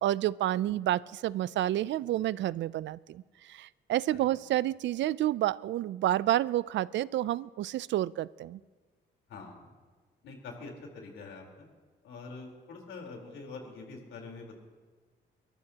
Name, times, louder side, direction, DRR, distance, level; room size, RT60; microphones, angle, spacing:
voice 1, 0.0-8.6, right 13 dB, 65° right, 20 dB, 0.4 m, -29 dB
voice 2, 9.3-9.7 10.2-11.6 12.0-14.5, left 3 dB, 80° left, 1 dB, 4.0 m, -45 dB
29.5 x 13.5 x 2.9 m, 1.4 s
cardioid pair, 90°, 20 cm